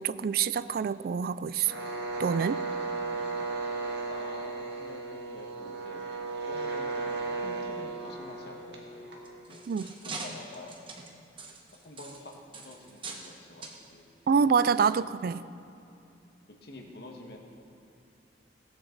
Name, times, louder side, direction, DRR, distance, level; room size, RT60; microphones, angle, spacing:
voice 1, 0.0-1.7 2.2-2.6 9.7-9.9 14.3-15.4, right 6 dB, 55° right, 17 dB, 0.3 m, -26 dB
sound 1, 1.6-9.4, right 3 dB, 70° right, 1.8 m, -35 dB
voice 2, 4.1-6.0 6.4-7.1 7.4-9.2 9.5-10.7 11.7-14.1 14.6-15.1 16.5-17.4, left 2 dB, 60° left, 1 dB, 1.6 m, -47 dB
sound 2, 9.1-13.3 13.6-13.8 14.5-14.7 15.2-15.3, right 3 dB, 30° right, 1.0 m, -43 dB
17.5 x 9.8 x 3.9 m, 2.7 s
head